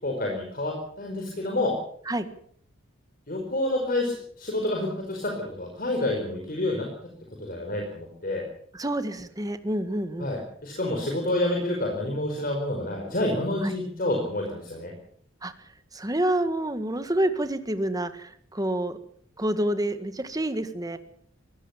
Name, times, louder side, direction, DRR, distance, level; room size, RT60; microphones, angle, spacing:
voice 1, 0.0-1.7 3.3-6.9 7.4-8.4 10.2-14.9, left 1 dB, 45° left, 1 dB, 4.9 m, -28 dB
voice 2, 8.7-10.3 13.6-13.8 15.4-15.5 15.9-19.0 19.4-21.0, right 1 dB, 20° right, 10 dB, 1.8 m, -28 dB
22.5 x 17.0 x 7.3 m, 0.62 s
head